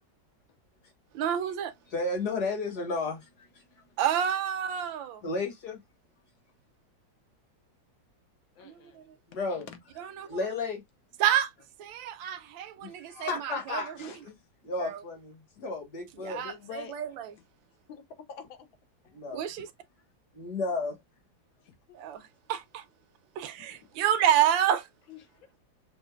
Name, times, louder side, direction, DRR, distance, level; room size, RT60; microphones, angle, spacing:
voice 1, 1.1-1.7 4.0-5.2 8.6-8.8 10.0-10.3 11.2-11.5 11.8-14.1 14.8-15.0 16.2-17.3 19.3-19.7 21.9-22.2 22.5-22.8 23.4-24.9, right 10 dB, 80° right, 1.3 m, -29 dB
voice 2, 1.9-3.8 5.2-5.8 9.3-9.7 10.3-10.8 12.8-14.0 14.2-14.3 14.6-16.4 19.1-19.5 20.3-21.0, left 3 dB, 55° left, 1.9 m, -33 dB
voice 3, 8.6-9.1 9.3-9.8 11.3-11.4 14.0-14.2 15.6-15.7 16.3-17.0 17.9-18.7 19.0-19.2 21.6-21.7 23.6-23.9 25.1-25.6, left 7 dB, 85° left, 1.7 m, -47 dB
6.1 x 2.8 x 2.3 m
omnidirectional pair, 2.1 m